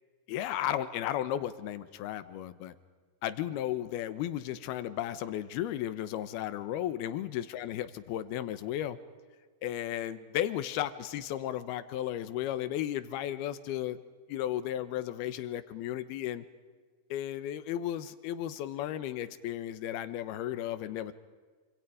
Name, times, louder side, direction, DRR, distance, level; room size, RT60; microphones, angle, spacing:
voice 1, 0.3-2.8 3.2-9.0 9.6-14.0 14.3-16.4 17.1-21.1, left 12 dB, 90° left, 13 dB, 3.0 m, -34 dB
27.0 x 26.0 x 5.0 m, 1.5 s
omnidirectional pair, 4.4 m